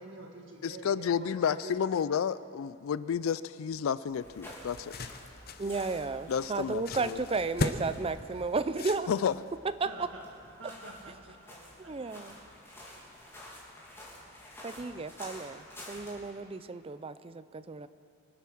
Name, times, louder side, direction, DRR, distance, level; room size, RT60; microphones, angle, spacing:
voice 1, 0.0-1.9 9.9-10.3 10.6-12.2, right 2 dB, 65° right, 1 dB, 2.0 m, -47 dB
voice 2, 0.6-4.9 6.3-7.2 9.1-9.3, left 7 dB, 75° left, 17 dB, 0.4 m, -31 dB
sound 1, 4.1-9.5, left 2 dB, 50° left, 0.8 m, -38 dB
sound 2, 4.2-16.3, left 1 dB, 10° left, 3.1 m, -50 dB
voice 3, 5.6-9.1 9.8-10.1 11.8-12.4 14.6-17.9, right 3 dB, 25° right, 13 dB, 0.5 m, -33 dB
24.5 x 9.1 x 6.1 m, 2.6 s
head